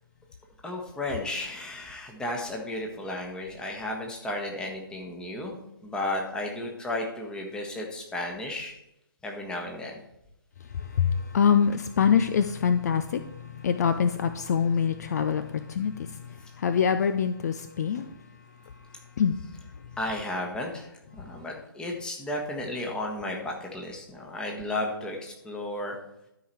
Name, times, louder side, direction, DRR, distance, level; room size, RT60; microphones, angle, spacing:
voice 1, 0.6-5.6 5.8-8.7 9.2-10.0 20.0-26.0, left 1 dB, 5° left, 1 dB, 1.3 m, -33 dB
voice 2, 10.7-18.3 18.6-18.8 19.2-19.4 19.7-19.8 21.1-21.3, left 7 dB, 45° left, 10 dB, 0.5 m, -25 dB
12.5 x 5.0 x 4.3 m, 0.85 s
figure-of-eight pair, 140°, 12 cm